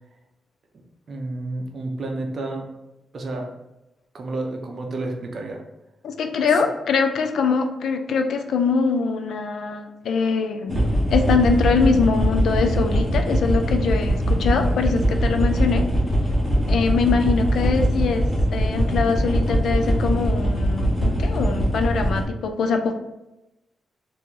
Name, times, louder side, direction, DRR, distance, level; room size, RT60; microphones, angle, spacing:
voice 1, 1.1-2.6 3.1-3.5 4.1-5.6 6.5-6.6, right 2 dB, 40° right, 2 dB, 0.6 m, -30 dB
voice 2, 6.0-10.8 11.1-15.9 16.7-22.9, left 5 dB, 70° left, 6 dB, 0.3 m, -23 dB
sound 1, 10.7-22.2, equal, 5° right, 0.9 m, -21 dB
3.0 x 2.5 x 3.6 m, 0.95 s
wide cardioid pair, 160°, 0 cm